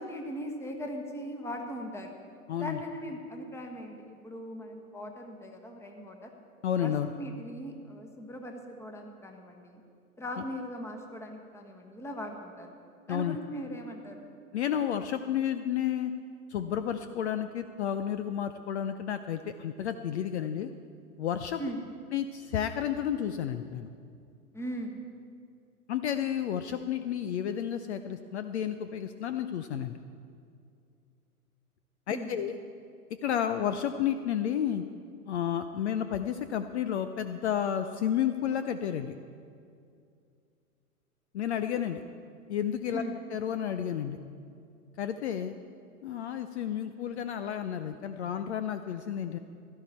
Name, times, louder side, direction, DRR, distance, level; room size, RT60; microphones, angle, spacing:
voice 1, 0.0-2.1 2.6-6.3 6.8-9.8 10.2-12.7 13.1-14.3 21.6-21.8 24.5-25.0 32.1-32.4 42.9-43.2, equal, 5° left, 3 dB, 1.3 m, -39 dB
voice 2, 2.5-2.8 6.6-7.1 10.4-10.5 13.1-13.4 14.5-16.1 16.5-20.7 21.2-21.6 22.1-23.9 25.9-30.0 32.1-32.6 33.2-34.8 35.3-39.1 41.3-42.0 42.5-43.0 43.3-44.2 45.0-45.5 46.0-49.4, left 9 dB, 50° left, 10 dB, 0.6 m, -31 dB
16.5 x 12.5 x 4.2 m, 2.4 s
figure-of-eight pair, 110°, 45 cm